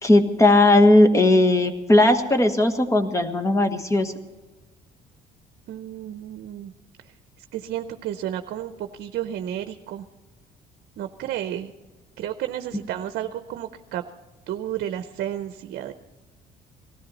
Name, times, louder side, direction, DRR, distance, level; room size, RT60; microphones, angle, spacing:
voice 1, 0.0-4.1, left 2 dB, 20° left, 8 dB, 1.3 m, -17 dB
voice 2, 5.7-6.7 7.5-10.0 11.0-11.7 12.2-14.0 14.5-15.9, right 11 dB, 70° right, 9 dB, 0.7 m, -32 dB
18.5 x 14.0 x 4.1 m, 1.2 s
cardioid pair, 110°, 17 cm